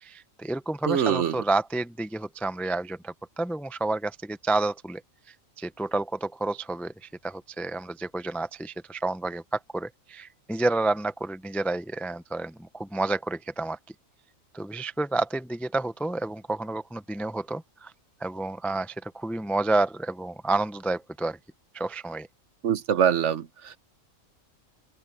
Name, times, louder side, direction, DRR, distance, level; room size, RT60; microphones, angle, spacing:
voice 1, 0.0-5.0 5.6-13.8 14.5-17.9 18.2-21.4 21.7-22.3, right 2 dB, ahead, 0.3 m, -30 dB
voice 2, 0.9-1.4 22.6-23.8, right 8 dB, 60° right, 1.1 m, -24 dB
open air
omnidirectional pair, 1.4 m